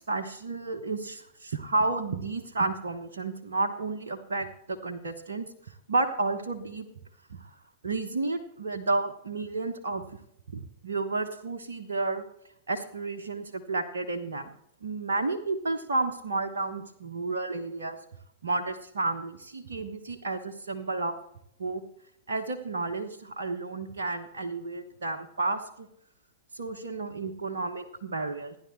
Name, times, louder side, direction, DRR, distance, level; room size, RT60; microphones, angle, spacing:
voice 1, 0.0-5.5 5.9-6.9 7.3-7.5 7.8-10.1 10.5-12.2 12.7-14.5 14.8-18.0 18.4-21.1 21.6-21.8 22.3-25.9 26.5-28.6, right 3 dB, 65° right, 5 dB, 1.2 m, -31 dB
27.0 x 10.5 x 3.3 m, 0.77 s
figure-of-eight pair, 100°, 0 cm